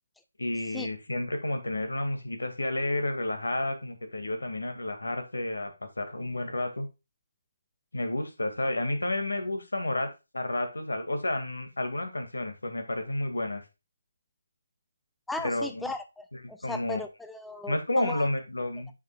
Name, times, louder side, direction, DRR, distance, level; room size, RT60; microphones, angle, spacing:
voice 1, 0.4-6.9 7.9-10.1 10.3-13.6 15.4-15.8 16.3-17.0 17.7-18.9, left 1 dB, 80° left, 7 dB, 2.3 m, -31 dB
voice 2, 15.3-18.2, left 2 dB, 5° left, 8 dB, 0.4 m, -37 dB
9.5 x 6.0 x 2.4 m, 0.26 s
figure-of-eight pair, 155°, 0 cm